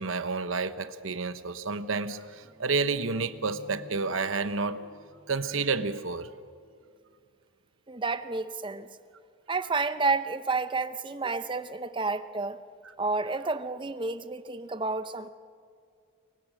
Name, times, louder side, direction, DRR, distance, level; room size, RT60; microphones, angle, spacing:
voice 1, 0.0-4.9 5.3-6.3, right 4 dB, 70° right, 1.0 m, -30 dB
sound 1, 2.2-4.0 4.3-5.9 6.3-6.7, left 1 dB, 55° left, 5.0 m, -52 dB
voice 2, 7.9-8.9 9.5-12.6 13.0-15.3, right 3 dB, 25° right, 0.8 m, -30 dB
28.5 x 23.5 x 6.5 m
head